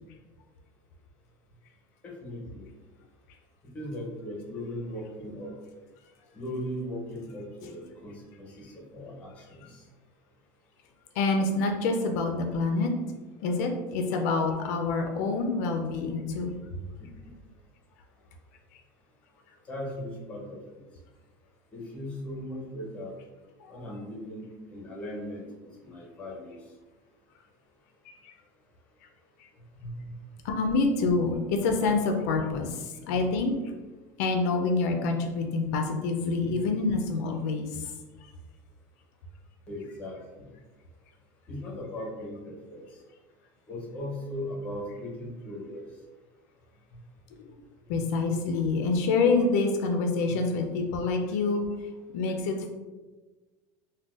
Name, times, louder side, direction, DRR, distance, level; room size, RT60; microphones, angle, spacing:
voice 1, 2.0-2.7 3.7-5.5 6.3-9.8 17.0-17.3 19.7-20.6 21.7-23.1 23.7-24.4 24.7-25.5 25.8-26.6 29.8-29.9 39.7-40.5 41.5-42.8 43.7-45.8, left 1 dB, 15° left, -2 dB, 0.6 m, -38 dB
voice 2, 11.2-12.9 13.4-16.6 23.6-23.7 28.2-28.3 30.4-33.5 34.2-37.9 47.4-47.5 47.9-51.7 52.1-52.7, left 3 dB, 70° left, 4 dB, 0.4 m, -27 dB
3.8 x 2.2 x 2.4 m, 1.2 s
cardioid pair, 180°, 9 cm